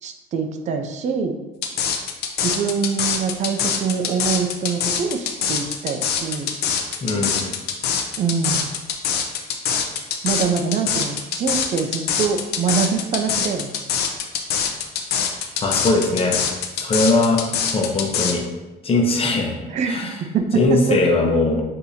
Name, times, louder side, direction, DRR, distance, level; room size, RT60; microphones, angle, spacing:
voice 1, 0.0-1.4 2.4-6.5 8.2-8.7 10.2-13.8 19.7-20.0 20.3-21.0, right 6 dB, 45° right, 5 dB, 0.5 m, -24 dB
sound 1, 1.6-18.3, left 7 dB, 75° left, 0.6 m, -23 dB
voice 2, 7.0-7.5 15.6-16.4 16.8-17.4 17.7-18.4 18.8-19.5 19.9-20.2 20.5-21.6, left 2 dB, 35° left, 0 dB, 0.9 m, -20 dB
6.6 x 2.8 x 2.7 m, 1.1 s
cardioid pair, 110°, 17 cm